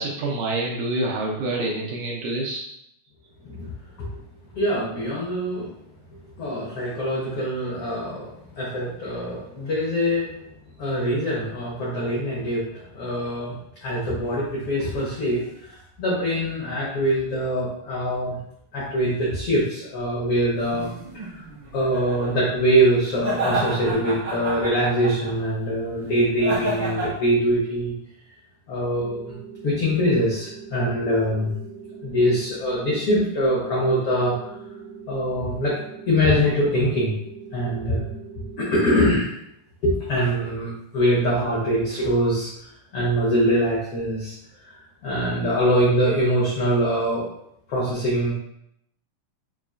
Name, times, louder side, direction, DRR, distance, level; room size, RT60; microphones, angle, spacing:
voice 1, 0.0-2.6, right 2 dB, 80° right, -2 dB, 2.0 m, -27 dB
voice 2, 4.5-5.7 6.4-10.3 10.8-13.5 13.8-18.4 18.7-20.9 21.1-21.4 21.7-27.9 28.7-29.4 29.6-31.5 32.0-34.3 35.1-35.8 36.1-37.1 37.5-38.1 38.6-39.3 39.8-42.5 42.9-44.3 44.7-47.3 47.7-48.3, equal, 90° left, -6 dB, 1.2 m, -23 dB
sound 1, 20.5-22.3 23.1-25.5 26.4-27.1, right 1 dB, 55° right, 1.3 m, -29 dB
sound 2, 28.9-39.0, right 6 dB, 70° left, 0.9 m, -41 dB
5.6 x 2.5 x 2.3 m, 0.75 s
omnidirectional pair, 3.9 m